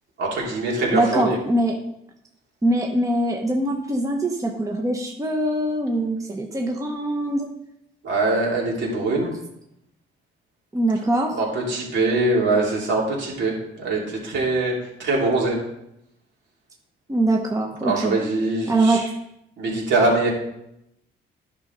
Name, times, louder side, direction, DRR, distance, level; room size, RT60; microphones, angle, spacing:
voice 1, 0.2-1.4 8.0-9.3 11.3-14.7 15.0-15.6 17.8-19.1 19.6-20.3, right 2 dB, 70° right, -3 dB, 3.2 m, -23 dB
voice 2, 0.9-1.8 2.6-7.5 10.7-11.4 17.1-18.1 18.7-19.0, right 1 dB, 15° right, 1 dB, 1.1 m, -22 dB
10.5 x 5.4 x 4.0 m, 0.81 s
cardioid pair, 90°, 20 cm